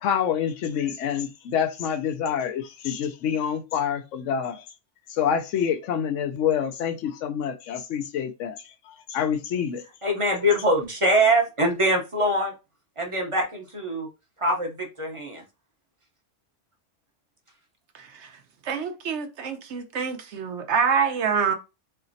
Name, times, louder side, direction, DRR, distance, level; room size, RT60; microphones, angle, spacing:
voice 1, 0.0-4.6 5.1-9.8, left 8 dB, 85° left, 0.9 m, -27 dB
voice 2, 10.0-12.5 13.0-14.1 14.4-15.4, right 1 dB, 30° right, 0.7 m, -23 dB
voice 3, 17.9-18.3 18.6-21.5, right 6 dB, 70° right, 1.0 m, -26 dB
4.0 x 3.3 x 2.6 m
omnidirectional pair, 1.3 m